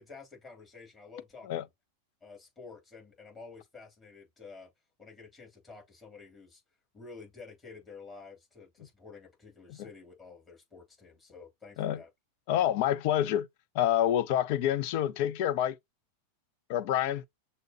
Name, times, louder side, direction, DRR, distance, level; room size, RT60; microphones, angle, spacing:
voice 1, 0.0-1.7 2.2-4.7 5.0-6.6 6.9-12.1, left 4 dB, 20° left, 3.1 m, -50 dB
voice 2, 12.5-13.5 13.7-15.8 16.7-17.3, left 11 dB, 45° left, 0.5 m, -27 dB
6.4 x 2.7 x 2.9 m
figure-of-eight pair, 90°, 0 cm